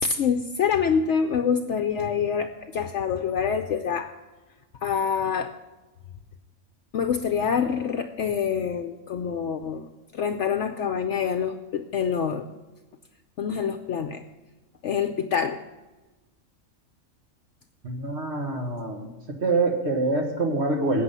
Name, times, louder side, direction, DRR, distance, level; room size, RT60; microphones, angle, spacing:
voice 1, 0.0-4.1 4.8-5.5 6.9-9.9 10.1-12.5 13.4-14.2 14.8-15.6, left 7 dB, 65° left, 7 dB, 0.9 m, -26 dB
voice 2, 17.8-19.1 19.4-21.0, right 2 dB, 50° right, 2 dB, 1.8 m, -25 dB
14.0 x 8.9 x 5.6 m, 1.2 s
omnidirectional pair, 1.4 m